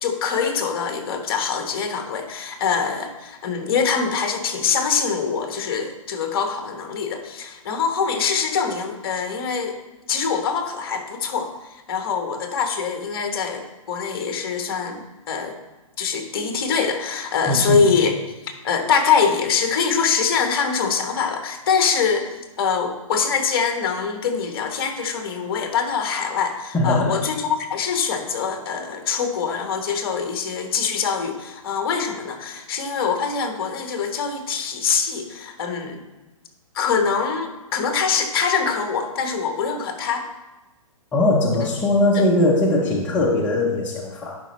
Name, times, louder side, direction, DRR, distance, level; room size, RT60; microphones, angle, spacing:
voice 1, 0.0-9.7 10.1-15.6 16.0-18.2 18.4-36.0 36.7-40.3 42.1-42.2, left 6 dB, 40° left, 5 dB, 1.1 m, -24 dB
voice 2, 17.5-17.8 26.7-27.2 41.1-44.4, left 1 dB, 10° left, -5 dB, 0.5 m, -20 dB
11.5 x 5.1 x 3.1 m, 1.1 s
hypercardioid pair, 160°, 18 cm